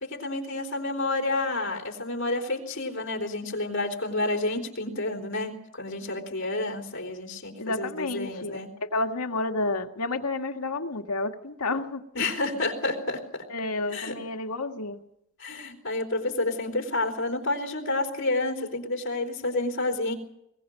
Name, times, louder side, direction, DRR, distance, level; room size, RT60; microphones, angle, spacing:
voice 1, 0.0-8.7 12.1-13.5 13.9-14.2 15.4-20.1, left 2 dB, 55° left, 2 dB, 3.8 m, -29 dB
voice 2, 7.6-12.0 13.5-15.0, left 2 dB, 90° left, 4 dB, 1.9 m, -30 dB
22.0 x 20.5 x 6.5 m, 0.81 s
head